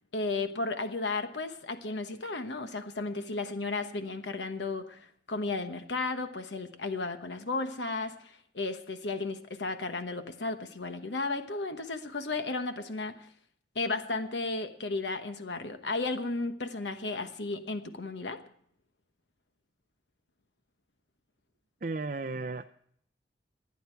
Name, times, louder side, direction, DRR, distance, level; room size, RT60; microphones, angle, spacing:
voice 1, 0.1-13.3 13.7-18.4, left 3 dB, 70° left, 8 dB, 1.1 m, -34 dB
voice 2, 21.8-22.6, right 3 dB, 45° right, 8 dB, 0.5 m, -34 dB
28.5 x 9.5 x 4.5 m, 0.64 s
head